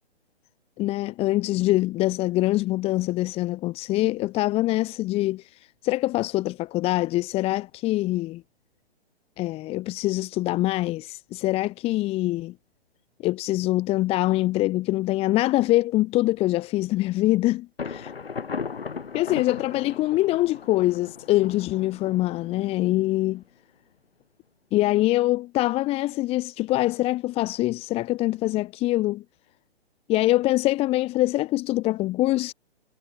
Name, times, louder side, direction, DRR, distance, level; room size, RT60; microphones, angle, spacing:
voice 1, 0.8-8.4 9.4-12.5 13.2-18.0 19.1-23.4 24.7-29.2 30.1-32.5, left 17 dB, 20° left, 2.1 m, -24 dB
Thunder, 17.8-23.4, left 5 dB, 65° left, 7.5 m, -37 dB
figure-of-eight pair, 130°, 32 cm